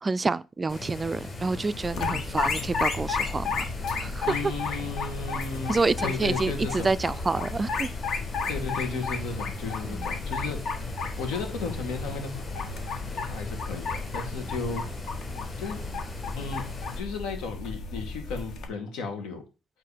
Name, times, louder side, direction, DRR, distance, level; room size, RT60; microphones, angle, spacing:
voice 1, 0.0-3.7 4.0-4.3 5.7-7.9 9.8-10.1, right 3 dB, 25° right, 0.3 m, -28 dB
sound 1, 0.7-17.0, left 3 dB, 25° left, 4.4 m, -39 dB
sound 2, 1.8-18.7, left 4 dB, 65° left, 1.6 m, -33 dB
voice 2, 4.3-6.9 8.5-10.6 11.2-14.8 15.6-15.8 16.4-16.7 17.0-19.4, left 4 dB, 85° left, 2.1 m, -34 dB
8.0 x 3.6 x 5.0 m
cardioid pair, 100°, 0 cm